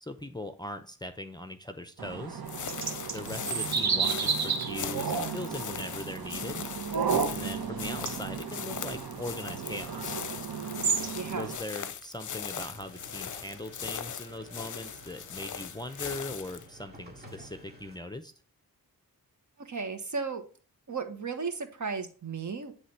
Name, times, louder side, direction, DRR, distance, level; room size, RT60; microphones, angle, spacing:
voice 1, 0.0-2.4 3.1-6.6 7.3-10.2 11.3-18.3, left 1 dB, 10° left, 8 dB, 0.6 m, -40 dB
sound 1, 2.0-11.6, right 6 dB, 75° right, 1.1 m, -32 dB
sound 2, 2.5-16.7, left 8 dB, 55° left, 0.6 m, -40 dB
voice 2, 11.1-11.5 19.6-20.4 20.9-22.7, right 5 dB, 50° right, 7 dB, 1.2 m, -34 dB
sound 3, 12.7-18.0, equal, 25° right, 2.2 m, -52 dB
9.3 x 3.3 x 4.3 m, 0.40 s
wide cardioid pair, 75°, 37 cm